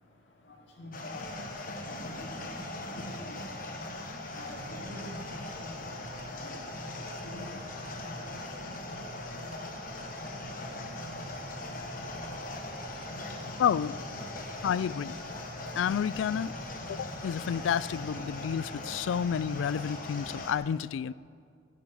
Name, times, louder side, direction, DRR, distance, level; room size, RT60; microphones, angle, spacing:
voice 1, 0.8-1.3 2.2-2.4 3.0-3.4 4.3-5.1 5.4-5.7 6.4-6.5 7.2-7.6 8.3-8.4, left 1 dB, 65° left, 0 dB, 2.4 m, -45 dB
sound 1, 0.9-20.5, left 2 dB, 45° left, 1.3 m, -40 dB
sound 2, 4.6-20.4, right 1 dB, 40° right, 0.8 m, -48 dB
voice 2, 13.6-14.0 14.6-15.2 15.8-16.5 16.9-21.1, left 8 dB, 85° left, 20 dB, 0.3 m, -30 dB
13.0 x 9.6 x 7.2 m, 2.2 s
head